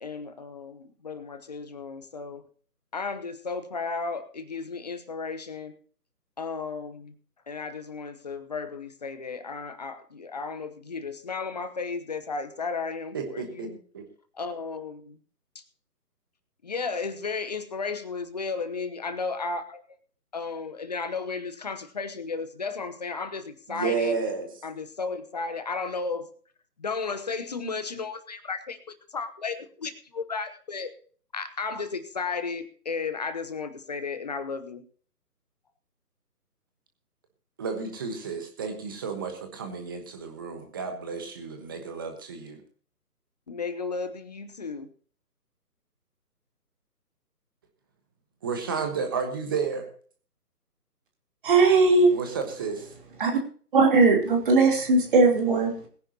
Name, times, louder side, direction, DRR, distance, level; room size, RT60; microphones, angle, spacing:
voice 1, 0.0-2.4 2.9-5.7 6.4-7.1 7.5-13.8 14.3-15.2 15.5-15.6 16.6-19.8 20.3-24.2 24.6-26.3 26.8-30.9 31.3-34.8 43.5-44.9, left 4 dB, 25° left, 10 dB, 1.0 m, -34 dB
voice 2, 13.1-13.7 13.9-14.0 23.7-24.5 37.6-42.6 48.4-49.9 52.1-52.9, right 5 dB, 15° right, 6 dB, 1.2 m, -31 dB
voice 3, 51.4-52.2 53.2-53.4 53.7-55.9, right 3 dB, 30° right, 2 dB, 3.3 m, -19 dB
21.5 x 10.0 x 2.8 m, 0.43 s
figure-of-eight pair, 150°, 49 cm